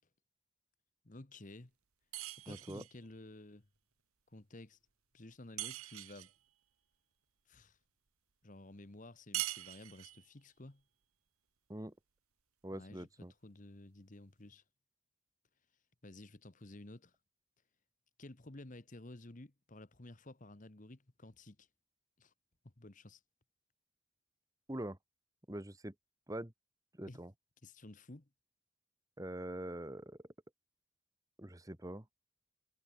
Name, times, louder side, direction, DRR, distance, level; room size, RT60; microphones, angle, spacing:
voice 1, 1.0-1.7 2.3-3.7 4.3-4.8 5.1-6.3 7.5-7.8 8.4-10.8 12.7-14.6 16.0-17.1 18.2-21.7 22.2-22.3 22.6-23.2 27.1-27.2 27.6-28.3, left 2 dB, 35° left, 1.2 m, -53 dB
sound 1, 2.1-3.0 5.6-6.4 9.3-10.3, right 16 dB, 85° right, 1.0 m, -42 dB
voice 2, 2.5-2.8 11.7-11.9 12.6-13.3 24.7-25.0 25.5-25.9 26.3-26.5 27.0-27.3 29.2-30.2 31.4-32.0, right 1 dB, 15° right, 1.3 m, -43 dB
head